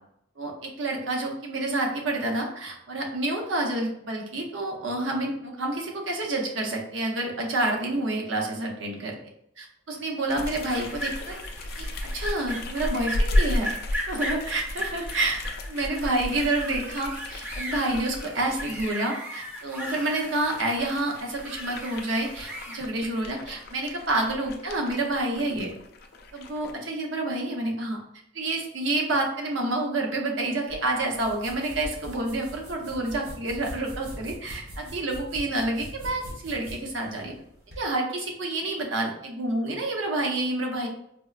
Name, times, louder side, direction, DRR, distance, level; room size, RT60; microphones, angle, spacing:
voice 1, 0.4-9.1 9.6-11.4 11.8-11.9 12.1-13.7 14.1-15.4 15.7-25.7 26.3-28.0 28.3-37.3 37.8-40.9, right 2 dB, 85° right, 1 dB, 0.7 m, -28 dB
sound 1, 10.3-18.9 19.5-26.8, left 1 dB, 55° left, 0.3 m, -34 dB
sound 2, 10.6-22.8, equal, 10° right, 0.5 m, -37 dB
sound 3, 30.7-37.8, equal, 60° right, 1.1 m, -42 dB
4.3 x 2.0 x 2.4 m, 0.74 s
head